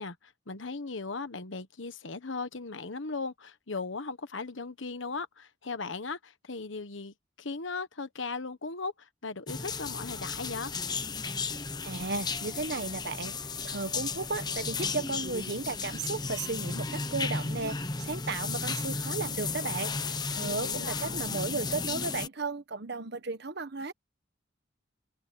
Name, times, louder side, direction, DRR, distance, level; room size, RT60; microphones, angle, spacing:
voice 1, 0.0-10.7 20.4-21.3, left 4 dB, 75° left, 1.3 m, -38 dB
sound 1, 9.5-22.3, left 4 dB, 20° left, 0.9 m, -34 dB
voice 2, 11.8-13.3 13.6-23.9, right 3 dB, 55° right, 1.2 m, -35 dB
open air
head